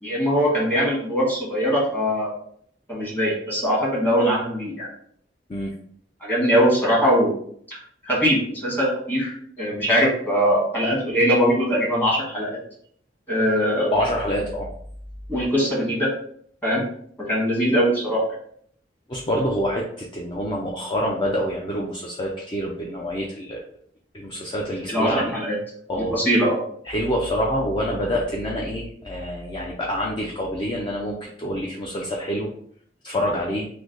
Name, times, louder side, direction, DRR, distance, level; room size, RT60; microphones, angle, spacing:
voice 1, 0.0-2.3 2.9-4.9 6.2-7.3 7.7-7.8 8.0-12.6 13.3-13.9 15.3-16.1 16.6-16.8 17.2-18.2 24.9-25.6 26.1-26.6, equal, 10° left, -5 dB, 1.3 m, -21 dB
voice 2, 13.8-14.7 19.1-23.6 24.1-25.3 25.9-26.1 26.8-32.5 33.0-33.7, equal, 30° left, -2 dB, 0.4 m, -26 dB
3.2 x 2.1 x 3.7 m, 0.63 s
head